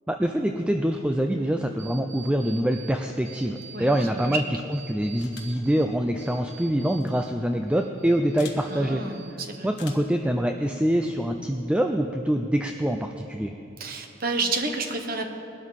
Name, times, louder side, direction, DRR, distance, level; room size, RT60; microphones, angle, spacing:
voice 1, 0.1-4.4 4.7-13.5, right 1 dB, 5° right, 5 dB, 0.4 m, -25 dB
sound 1, 1.8-2.9 3.2-4.4 4.7-7.3 7.6-8.8 9.1-9.7, right 8 dB, 65° right, 2.5 m, -47 dB
Metallic attach release, 5.2-5.6 6.9-7.1 8.4-8.6 9.7-10.2, left 6 dB, 55° left, 1.7 m, -44 dB
voice 2, 8.7-9.7 13.8-15.3, right 3 dB, 45° right, 5 dB, 1.2 m, -29 dB
20.5 x 12.5 x 4.2 m, 2.7 s
head